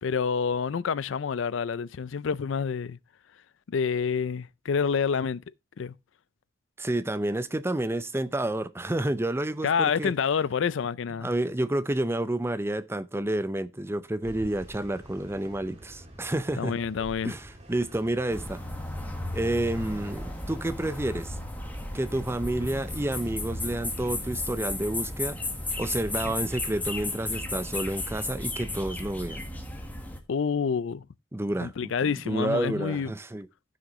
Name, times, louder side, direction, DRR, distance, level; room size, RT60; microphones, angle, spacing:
voice 1, 0.0-3.0 3.7-5.4 5.8-5.9 9.6-11.3 16.6-17.3 30.3-31.0 31.6-33.1, left 6 dB, 65° left, 0.4 m, -28 dB
voice 2, 6.8-10.1 11.2-16.8 17.2-18.6 19.3-21.4 21.9-25.4 25.8-29.4 31.3-31.9 32.2-33.5, right 1 dB, 10° right, 0.5 m, -29 dB
sound 1, 14.2-26.9, equal, 35° right, 2.6 m, -48 dB
sound 2, 18.3-30.2, left 2 dB, 10° left, 1.4 m, -34 dB
15.0 x 6.3 x 3.1 m
head